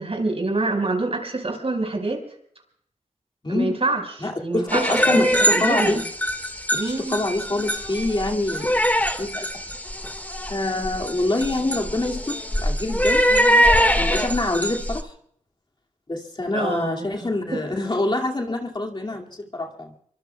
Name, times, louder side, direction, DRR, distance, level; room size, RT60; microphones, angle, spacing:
voice 1, 0.0-2.2 3.5-6.0 6.7-7.2 16.5-17.6, right 2 dB, 50° right, 3 dB, 5.0 m, -26 dB
voice 2, 3.4-3.8 4.2-6.0 6.7-8.8 9.2-9.6 10.5-13.2 14.0-15.1 16.1-19.9, left 2 dB, 35° left, 1 dB, 2.3 m, -26 dB
sound 1, 4.7-15.0, equal, 15° left, 1.7 m, -23 dB
25.5 x 24.0 x 2.3 m, 0.65 s
cardioid pair, 55°, 13 cm